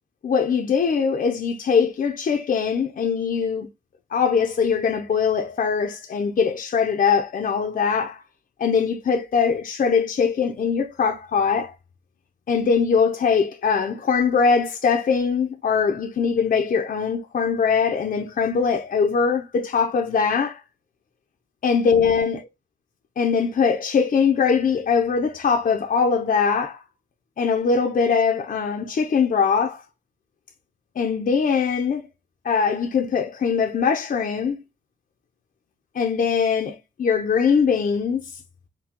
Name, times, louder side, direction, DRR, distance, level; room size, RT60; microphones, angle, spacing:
voice 1, 0.2-3.7 4.1-8.2 8.6-11.7 12.5-20.6 21.6-22.5 23.2-26.8 27.4-29.8 31.0-32.1 32.4-34.6 35.9-38.2, left 6 dB, 50° left, 0.6 m, -21 dB
4.6 x 2.3 x 3.6 m
wide cardioid pair, 125°, 18 cm